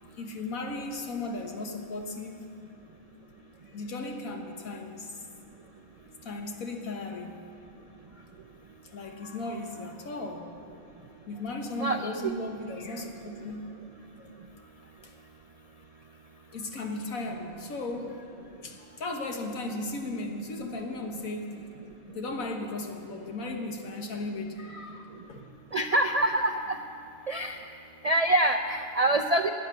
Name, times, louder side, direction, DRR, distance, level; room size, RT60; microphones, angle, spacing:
voice 1, 0.0-2.4 3.7-5.2 6.2-7.5 8.1-8.3 8.8-10.6 11.3-13.7 14.2-14.3 15.0-15.1 16.5-18.3 18.6-21.6 22.1-25.5, left 2 dB, 85° left, 3 dB, 1.8 m, -36 dB
voice 2, 11.8-12.3 25.7-26.8 27.3-27.6 28.0-29.5, right 1 dB, 60° right, 5 dB, 0.4 m, -25 dB
12.0 x 9.6 x 8.9 m, 2.7 s
omnidirectional pair, 1.4 m